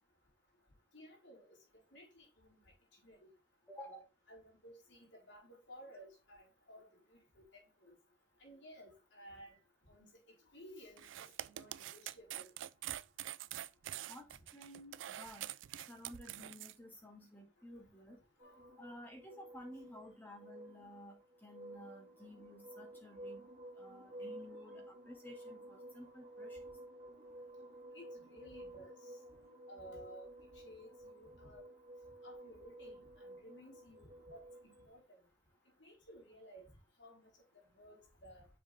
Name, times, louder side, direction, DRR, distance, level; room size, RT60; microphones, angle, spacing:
voice 1, 0.9-1.6 1.9-2.6 3.0-3.3 3.8-7.9 8.4-9.6 9.8-10.1 10.5-12.5 18.4-18.7 27.9-29.2 29.7-31.7 32.2-35.2 35.8-36.7 37.0-37.3 37.7-38.5, equal, 70° left, 4.3 m, -56 dB
voice 2, 3.7-4.0 14.1-14.2 14.5-15.5 15.9-18.2 18.8-23.4 23.8-26.7, equal, 10° left, 2.0 m, -53 dB
sound 1, 11.0-16.7, right 13 dB, 85° right, 0.4 m, -45 dB
sound 2, 18.4-34.9, right 1 dB, 30° right, 1.4 m, -53 dB
7.4 x 4.5 x 3.6 m
head